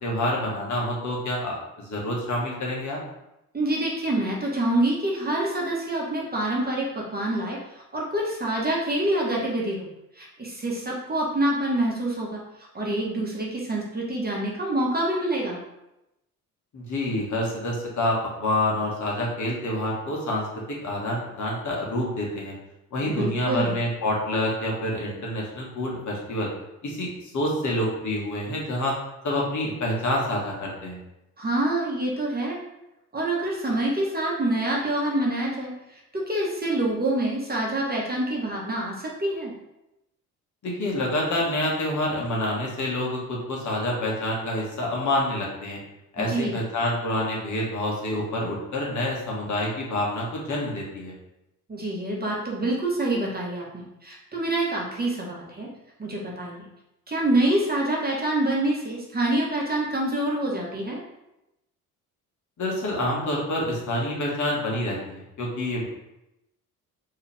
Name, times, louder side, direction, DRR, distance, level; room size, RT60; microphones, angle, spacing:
voice 1, 0.0-3.0 16.7-20.5 20.8-22.5 22.9-26.5 26.8-28.9 29.2-31.0 40.6-45.8 46.1-51.1 62.6-65.9, left 1 dB, 40° left, -3 dB, 1.6 m, -27 dB
voice 2, 3.5-9.9 10.1-15.6 23.0-23.7 31.4-32.6 33.1-39.5 46.2-46.5 51.7-55.7 56.0-56.6 57.1-61.0, right 1 dB, 20° right, -3 dB, 1.4 m, -26 dB
4.4 x 3.3 x 3.5 m, 0.90 s
hypercardioid pair, 55°, 43 cm